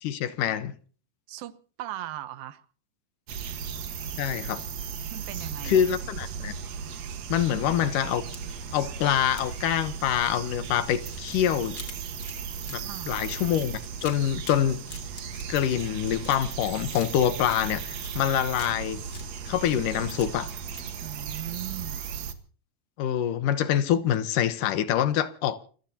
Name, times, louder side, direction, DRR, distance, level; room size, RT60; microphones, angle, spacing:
voice 1, 0.0-0.7 4.2-4.6 5.6-6.5 7.3-8.3 8.7-11.8 12.7-14.8 15.5-19.0 19.5-20.5 23.0-25.6, left 10 dB, 75° left, 2.5 m, -25 dB
voice 2, 1.3-2.6 5.1-5.8 8.7-8.8 12.8-13.2 21.0-22.0, right 14 dB, 85° right, 2.7 m, -39 dB
sound 1, 3.3-22.3, right 6 dB, 60° right, 2.4 m, -36 dB
sound 2, 8.1-8.8 9.4-9.6 10.2-16.6 16.9-18.2 18.5-19.3 19.6-20.5 20.7-20.9, left 3 dB, 30° left, 3.4 m, -47 dB
28.5 x 16.5 x 2.8 m
omnidirectional pair, 4.0 m